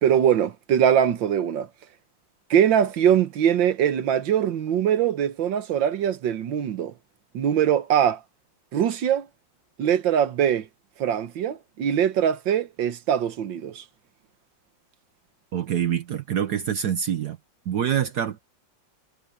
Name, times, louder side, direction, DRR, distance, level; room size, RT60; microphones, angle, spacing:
voice 1, 0.0-1.7 2.5-6.9 7.3-8.2 8.7-9.3 9.8-10.7 11.0-13.8, right 9 dB, 85° right, 1.8 m, -22 dB
voice 2, 15.5-17.4 17.7-18.4, right 9 dB, 65° right, 1.4 m, -25 dB
omnidirectional pair, 2.0 m